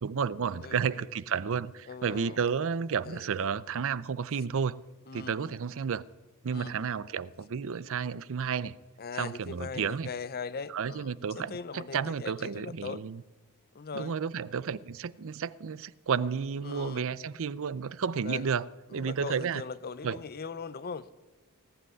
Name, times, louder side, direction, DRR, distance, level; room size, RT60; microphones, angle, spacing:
voice 1, 0.0-4.8 5.1-6.0 6.4-8.8 9.1-10.1 10.7-13.2 13.9-18.7 18.9-19.6 20.0-20.2, right 6 dB, 60° right, 0.5 m, -32 dB
voice 2, 0.6-1.1 1.9-2.5 3.0-3.3 5.1-5.5 6.5-6.9 9.0-13.0 13.7-14.1 16.6-17.0 18.2-18.5 18.9-21.1, left 5 dB, 45° left, 0.6 m, -40 dB
18.0 x 7.8 x 9.6 m
head